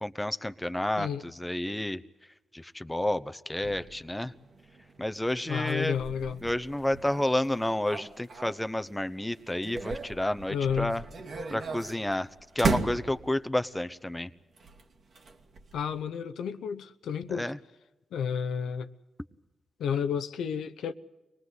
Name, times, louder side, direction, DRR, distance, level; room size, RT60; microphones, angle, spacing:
voice 1, 0.0-2.0 2.5-4.3 5.0-6.0 6.4-11.0 11.5-12.3 12.5-14.3 17.3-17.6, left 1 dB, 10° left, 1.0 m, -30 dB
sound 1, 3.6-9.0 9.3-13.6 14.6-16.0, right 4 dB, 65° right, 2.3 m, -37 dB
voice 2, 5.5-6.4 10.5-10.9 15.7-17.5 18.1-18.9 19.8-20.9, left 7 dB, 85° left, 0.9 m, -31 dB
24.0 x 19.5 x 8.1 m
cardioid pair, 55°, 0 cm